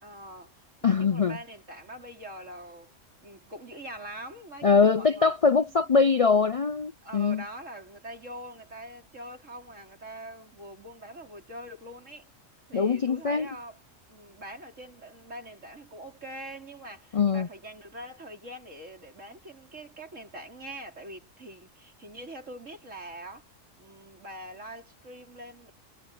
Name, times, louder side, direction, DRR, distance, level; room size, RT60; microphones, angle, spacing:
voice 1, 0.0-2.9 3.2-5.3 7.0-12.3 12.7-13.8 14.1-23.4 23.8-25.7, right 1 dB, 70° right, 4.9 m, -43 dB
voice 2, 0.8-1.4 4.6-7.4 12.7-13.5 17.1-17.5, left 5 dB, 65° left, 0.3 m, -23 dB
omnidirectional pair, 1.3 m